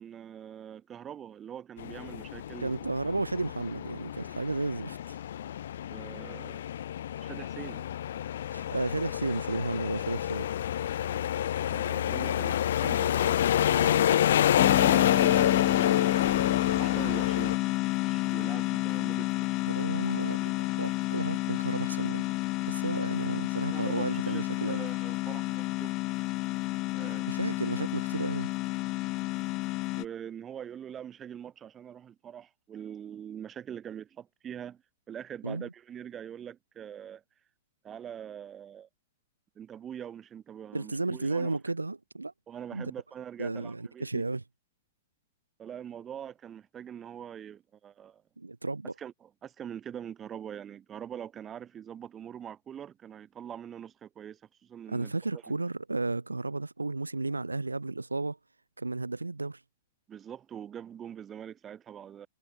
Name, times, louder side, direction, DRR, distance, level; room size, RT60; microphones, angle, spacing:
voice 1, 0.0-2.9 5.9-6.7 7.2-7.9 11.7-16.2 16.8-17.7 18.0-20.5 23.7-25.9 26.9-27.3 27.8-27.9 30.0-34.8 35.1-37.2 37.8-38.9 39.6-41.6 42.5-44.2 45.6-48.2 49.0-55.4 60.1-62.3, right 9 dB, 20° right, 7.8 m, -43 dB
sound 1, 1.8-17.6, left 11 dB, 60° left, 1.3 m, -28 dB
voice 2, 2.6-5.2 8.5-10.5 19.7-22.2 22.7-24.8 27.3-28.5 35.4-35.7 40.7-42.3 42.7-42.9 43.4-44.4 48.4-48.9 54.9-58.4 58.8-59.6, right 3 dB, 85° right, 1.0 m, -33 dB
sound 2, 14.6-30.1, left 21 dB, 35° left, 0.3 m, -30 dB
figure-of-eight pair, 105°, 0 cm